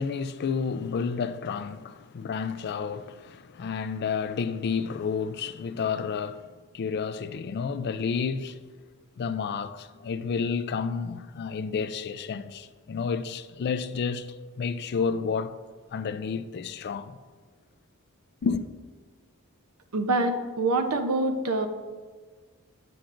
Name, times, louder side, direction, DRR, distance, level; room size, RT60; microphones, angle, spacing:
voice 1, 0.0-8.6 9.2-15.6 15.9-17.2 18.4-18.7, left 5 dB, 50° left, 0.4 m, -30 dB
voice 2, 19.9-21.7, right 2 dB, 85° right, 0.7 m, -25 dB
8.5 x 7.7 x 2.5 m
head